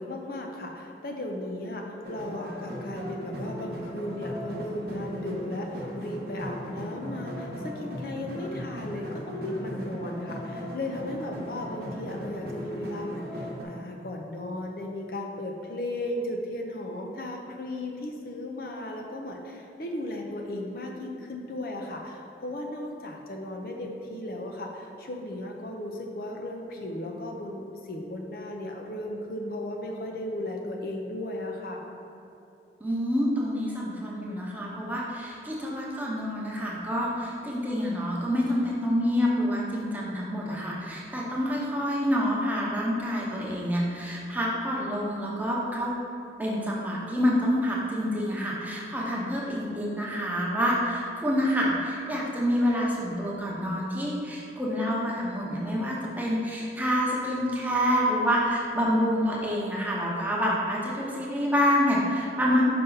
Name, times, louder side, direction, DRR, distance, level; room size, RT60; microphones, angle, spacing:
voice 1, 0.0-31.8, left 1 dB, 55° left, 1 dB, 0.6 m, -35 dB
sound 1, 2.0-13.6, equal, 60° right, 1.0 m, -37 dB
voice 2, 32.8-45.9 46.4-62.6, equal, 10° right, -4 dB, 0.8 m, -27 dB
5.7 x 5.4 x 3.9 m, 2.8 s
head